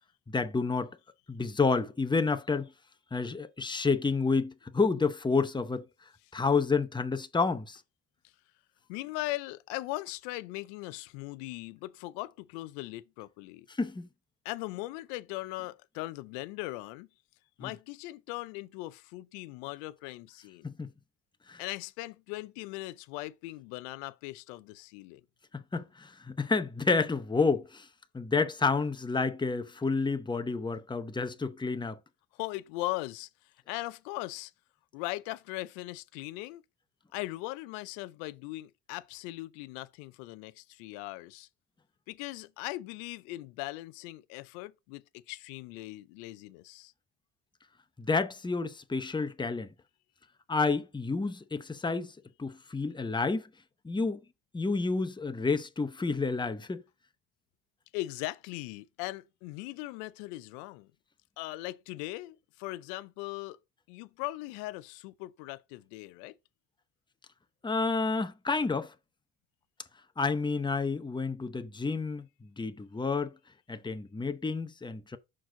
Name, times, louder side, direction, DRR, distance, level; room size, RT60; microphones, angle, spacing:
voice 1, 0.3-1.0 1.3-2.7 3.1-5.8 6.3-7.8 13.7-14.1 17.6-17.7 20.6-20.9 21.5-21.6 25.5-27.9 28.1-32.0 48.0-49.7 50.5-53.5 53.8-54.2 54.5-56.8 67.6-68.9 70.2-73.4 73.7-75.2, left 4 dB, 10° left, 0.7 m, -30 dB
voice 2, 8.9-13.7 14.4-17.1 17.6-20.7 21.6-25.2 32.3-33.3 33.7-34.5 34.9-36.6 37.1-41.5 42.1-46.9 57.9-60.9 61.4-63.6 63.9-66.3, left 19 dB, 90° left, 0.6 m, -39 dB
6.1 x 4.6 x 3.7 m
supercardioid pair, 65°, 47 cm